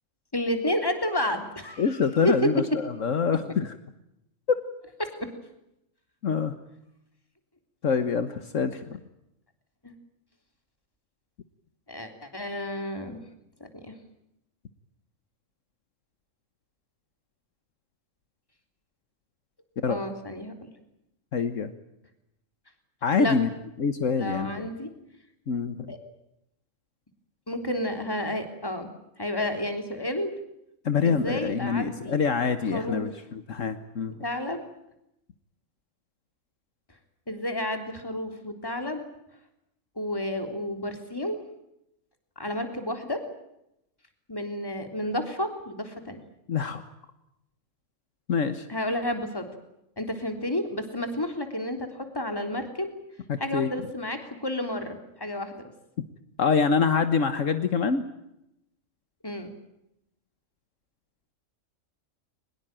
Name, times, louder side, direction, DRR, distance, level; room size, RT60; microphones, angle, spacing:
voice 1, 0.3-2.0 2.2-2.3 9.8-9.9 11.9-13.2 13.8-13.9 19.9-20.7 23.2-23.4 24.2-24.9 25.9-26.0 27.5-28.9 29.2-30.3 31.0-32.2 32.7-33.1 34.2-34.6 37.3-39.0 40.0-41.4 42.4-43.2 44.3-46.2 48.7-49.4 50.0-52.9 53.4-55.6 59.2-59.5, left 1 dB, 15° left, 6 dB, 3.6 m, -31 dB
voice 2, 1.8-3.7 4.5-4.6 6.2-6.5 7.8-9.0 19.8-20.0 21.3-21.7 23.0-23.5 23.8-24.7 25.5-25.9 30.8-34.1 46.5-46.8 48.3-48.7 53.3-53.7 56.4-58.0, left 5 dB, 75° left, 10 dB, 1.7 m, -25 dB
23.5 x 21.0 x 9.0 m, 0.83 s
omnidirectional pair, 1.3 m